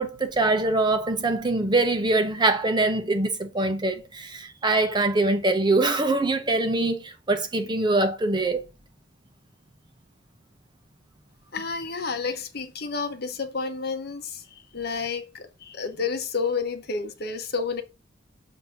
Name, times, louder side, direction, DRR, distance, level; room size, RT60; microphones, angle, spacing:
voice 1, 0.0-8.6, right 2 dB, 20° right, 0.7 m, -23 dB
voice 2, 11.5-17.8, left 5 dB, 50° left, 0.9 m, -30 dB
7.3 x 2.7 x 5.5 m
head